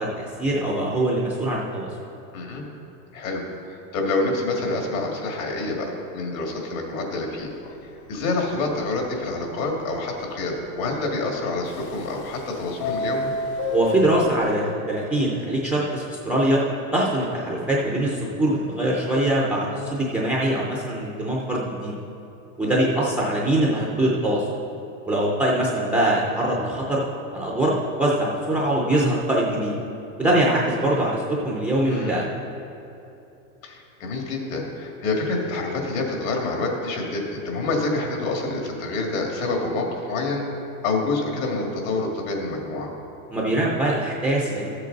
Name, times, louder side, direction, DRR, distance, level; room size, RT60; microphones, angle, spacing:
voice 1, 0.0-1.9 13.7-16.6 16.9-21.9 22.6-24.4 25.1-27.0 27.3-29.8 30.2-32.2 43.3-44.7, right 1 dB, 5° right, -4 dB, 0.3 m, -23 dB
voice 2, 2.3-2.6 3.1-7.5 7.8-13.3 31.8-32.3 33.6-40.4 40.8-42.9, left 2 dB, 70° left, 1 dB, 2.2 m, -27 dB
Subway metro underground, 7.6-7.7 8.1-8.2 8.5-8.6 9.1-9.2 11.7-12.4 12.7-14.4, left 4 dB, 50° left, 0.7 m, -28 dB
13.0 x 7.7 x 3.9 m, 2.9 s
supercardioid pair, 150°, 42 cm